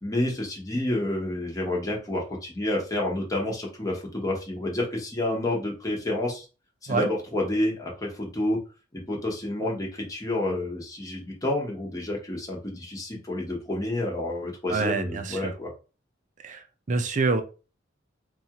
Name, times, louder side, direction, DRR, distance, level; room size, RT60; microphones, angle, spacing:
voice 1, 0.0-6.5 6.8-8.6 8.9-15.7, left 1 dB, 20° left, -2 dB, 0.9 m, -29 dB
voice 2, 14.7-15.5 16.4-17.4, right 4 dB, 40° right, 8 dB, 0.5 m, -27 dB
4.1 x 2.4 x 2.8 m, 0.32 s
head